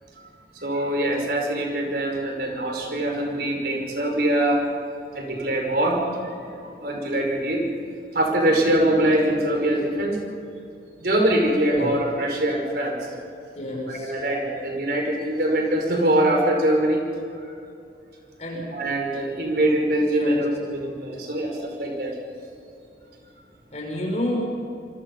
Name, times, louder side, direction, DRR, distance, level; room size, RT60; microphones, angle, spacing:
voice 1, 0.5-4.6 5.1-7.6 8.1-10.2 11.0-13.0 13.9-17.0 18.7-22.1, right 1 dB, 60° right, 1 dB, 5.2 m, -23 dB
voice 2, 13.5-14.1 18.4-18.6 20.1-20.4 23.7-24.4, equal, 40° left, -2 dB, 6.4 m, -28 dB
26.5 x 25.0 x 5.5 m, 2.6 s
head